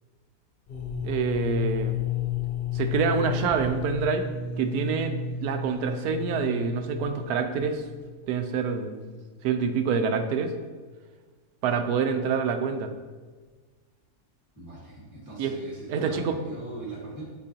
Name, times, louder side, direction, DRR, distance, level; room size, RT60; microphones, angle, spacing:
sound 1, 0.7-8.4, left 8 dB, 55° left, 0.6 m, -32 dB
voice 1, 1.0-2.0 2.7-4.3 4.6-5.2 5.4-7.8 8.3-9.1 9.4-10.5 11.6-12.9 15.4-15.6 15.9-16.4, right 6 dB, 85° right, 7 dB, 1.1 m, -26 dB
voice 2, 14.5-17.2, right 2 dB, 15° right, -6 dB, 1.5 m, -40 dB
8.6 x 4.5 x 2.8 m, 1.4 s
omnidirectional pair, 1.6 m